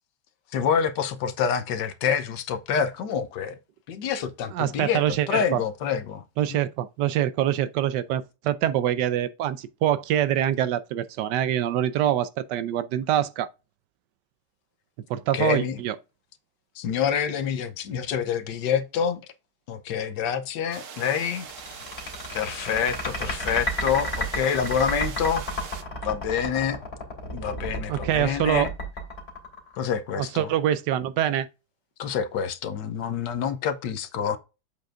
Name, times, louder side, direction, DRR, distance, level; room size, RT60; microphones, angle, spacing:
voice 1, 0.5-3.6 3.9-5.0 5.3-6.2 6.5-6.6 15.3-15.8 16.8-19.2 19.7-21.5 22.3-25.4 26.0-26.8 27.3-28.7 29.8-30.5 32.0-34.4, left 7 dB, 75° left, 1.4 m, -27 dB
voice 2, 4.5-5.6 6.4-13.5 15.1-16.0 27.9-28.7 30.1-31.5, right 11 dB, 75° right, 1.2 m, -25 dB
sound 1, 20.7-25.8, right 6 dB, 50° right, 1.1 m, -41 dB
sound 2, 21.4-30.1, left 1 dB, 35° left, 2.6 m, -31 dB
7.7 x 6.7 x 2.5 m
omnidirectional pair, 2.0 m